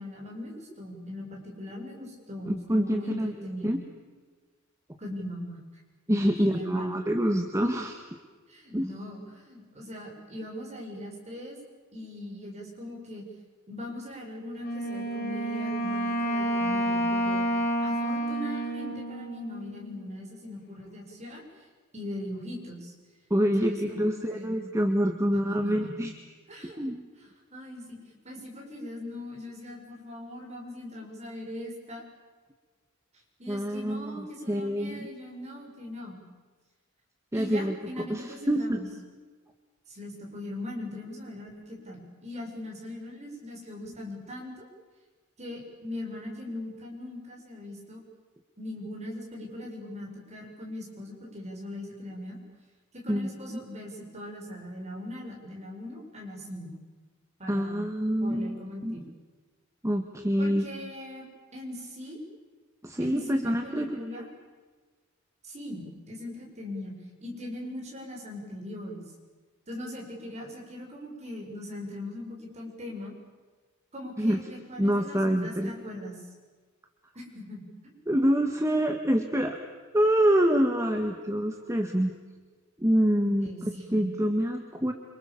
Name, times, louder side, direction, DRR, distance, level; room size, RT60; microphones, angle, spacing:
voice 1, 0.0-3.7 5.0-5.6 6.1-7.0 8.5-11.6 11.9-13.2 13.7-17.5 17.8-21.4 21.9-22.9 23.4-24.5 25.4-26.1 26.5-26.8 27.5-32.0 33.4-36.2 37.3-38.9 39.9-44.7 45.4-48.0 48.6-52.4 53.0-56.7 57.4-57.8 58.2-59.1 60.4-61.3 61.5-62.2 63.0-64.2 65.4-67.0 67.2-69.0 69.7-73.1 73.9-76.3 77.1-77.9 83.2-84.1, left 1 dB, 35° right, -1 dB, 7.5 m, -40 dB
voice 2, 2.5-3.3 3.6-3.8 6.1-8.0 8.7-8.9 23.3-26.1 26.8-27.1 33.5-35.1 37.3-38.8 53.1-53.6 57.5-59.0 59.8-60.7 62.8-64.2 74.2-74.4 74.8-75.8 78.1-79.6 79.9-82.1 82.8-83.5 83.9-84.9, equal, 15° right, 4 dB, 1.7 m, -26 dB
Wind instrument woodwind instrument, 14.6-20.1, right 1 dB, 50° left, 4.7 m, -29 dB
28.5 x 27.0 x 7.2 m, 1.4 s
head